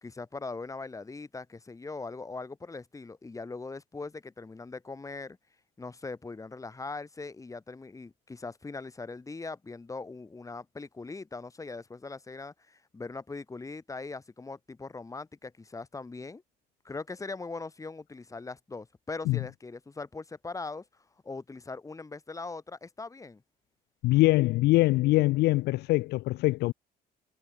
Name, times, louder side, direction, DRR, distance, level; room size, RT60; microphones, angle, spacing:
voice 1, 0.0-5.4 5.8-16.4 16.8-20.8 21.2-23.4, left 3 dB, 20° left, 3.4 m, -40 dB
voice 2, 24.0-26.7, left 20 dB, 75° left, 0.4 m, -23 dB
cardioid pair, 110°, 17 cm